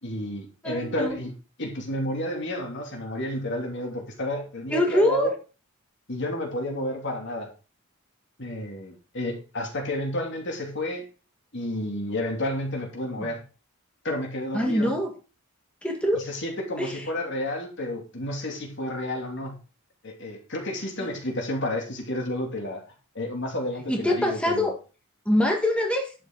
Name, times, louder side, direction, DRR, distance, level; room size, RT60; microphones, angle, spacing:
voice 1, 0.0-1.3 1.6-5.3 6.1-7.5 8.4-11.1 11.5-13.4 14.0-14.9 16.3-19.6 20.0-22.8 23.1-24.7, left 1 dB, 55° left, 2.8 m, -31 dB
voice 2, 0.6-1.2 4.7-5.3 13.2-13.3 14.5-15.2 15.8-16.2 16.8-17.1 21.0-21.1 23.9-24.7 25.3-26.1, equal, 5° left, 1.8 m, -24 dB
11.5 x 7.9 x 4.1 m
head